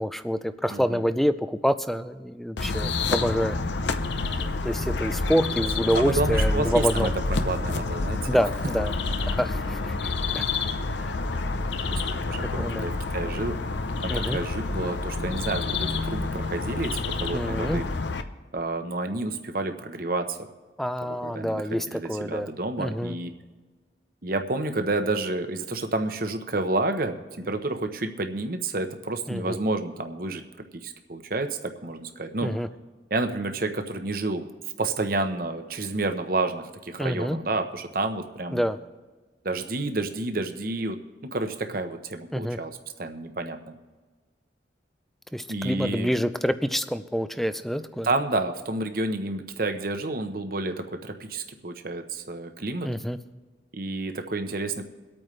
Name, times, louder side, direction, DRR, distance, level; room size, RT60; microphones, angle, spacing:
voice 1, 0.0-3.6 4.2-7.1 8.3-8.9 9.3-10.4 10.9-11.1 12.5-12.9 14.1-14.4 17.3-17.8 20.8-22.5 22.8-23.2 29.3-29.6 32.4-32.7 37.0-37.4 38.5-38.8 42.3-42.6 45.3-48.1 52.8-53.2, equal, ahead, 12 dB, 0.4 m, -27 dB
voice 2, 0.7-1.0 5.9-7.1 7.4-8.4 9.0-9.1 11.9-13.6 14.0-17.9 18.5-20.4 21.0-23.3 24.2-30.4 30.8-32.5 33.1-34.5 34.8-38.7 39.4-43.8 45.5-46.1 48.0-52.9 53.7-54.8, right 2 dB, 50° right, 7 dB, 0.9 m, -30 dB
sound 1, 2.6-18.2, left 3 dB, 75° left, 0.7 m, -28 dB
23.5 x 8.8 x 3.2 m, 1.4 s
head